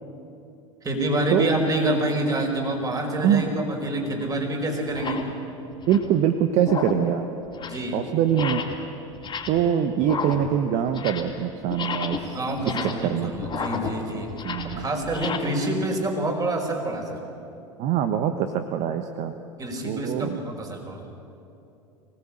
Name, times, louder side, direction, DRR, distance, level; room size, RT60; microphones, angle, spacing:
voice 1, 0.8-5.3 7.7-8.0 12.3-14.3 14.8-17.2 19.6-21.0, right 1 dB, 20° right, 2 dB, 5.3 m, -27 dB
sound 1, 3.3-3.5 4.2-4.3 4.8-5.3 5.7-6.2 6.6-7.1 7.4-7.9 8.3-8.8 9.1-9.7 10.0-11.4 11.7-15.4, left 5 dB, 30° left, 3.6 m, -33 dB
voice 2, 5.9-7.3 7.9-8.6 9.5-13.3 14.4-14.9 17.8-19.3 19.8-20.4, right 9 dB, 45° right, 8 dB, 1.3 m, -24 dB
24.0 x 18.5 x 8.9 m, 2.8 s
figure-of-eight pair, 80°, 17 cm